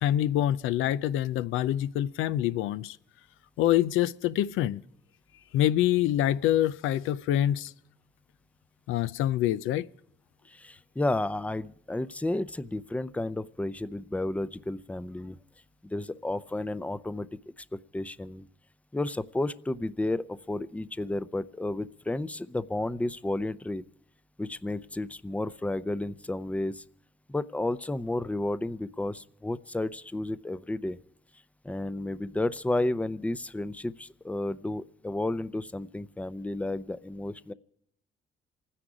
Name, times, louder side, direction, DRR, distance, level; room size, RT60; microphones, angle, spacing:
voice 1, 0.0-3.0 3.6-4.8 5.5-7.7 8.9-9.9, left 12 dB, 90° left, 0.5 m, -26 dB
voice 2, 10.5-15.4 15.8-17.3 17.6-17.7 17.9-18.5 18.9-23.8 24.4-26.8 27.3-31.0 31.6-37.5, left 2 dB, 5° left, 0.6 m, -32 dB
27.5 x 10.0 x 4.9 m
cardioid pair, 90°, 20 cm